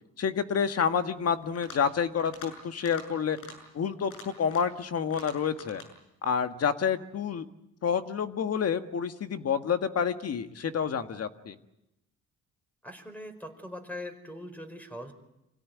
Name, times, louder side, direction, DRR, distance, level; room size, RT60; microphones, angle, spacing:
voice 1, 0.2-3.4 3.7-5.8 6.2-7.5 7.8-11.6, left 7 dB, 55° left, 8 dB, 1.7 m, -28 dB
sound 1, 1.4-1.9 2.2-2.5 2.8-3.1 3.3-3.6 4.0-4.8 5.1-5.9, left 4 dB, 80° left, 7.0 m, -46 dB
voice 2, 12.8-15.1, left 1 dB, 5° left, 6 dB, 4.9 m, -41 dB
27.0 x 17.0 x 9.6 m, 0.90 s
cardioid pair, 90°, 30 cm